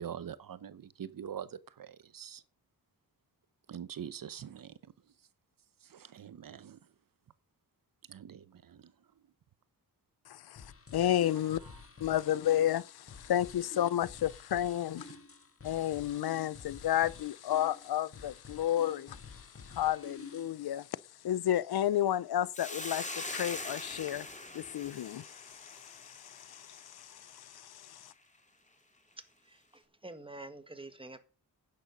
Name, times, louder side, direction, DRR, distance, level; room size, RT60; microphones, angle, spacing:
voice 1, 0.0-2.4 3.7-4.7 5.9-6.8 8.1-8.9, right 8 dB, 60° right, 0.8 m, -44 dB
voice 2, 10.3-11.6 12.0-15.1 15.6-19.2 19.6-20.9 21.2-24.3 24.5-28.1, left 11 dB, 75° left, 0.6 m, -32 dB
sound 1, 10.6-20.6, left 4 dB, 35° left, 1.8 m, -51 dB
Hiss, 22.5-27.0, left 2 dB, 20° left, 2.2 m, -42 dB
voice 3, 29.4-31.2, right 2 dB, 15° right, 1.6 m, -47 dB
10.5 x 9.0 x 5.3 m
wide cardioid pair, 105°, 38 cm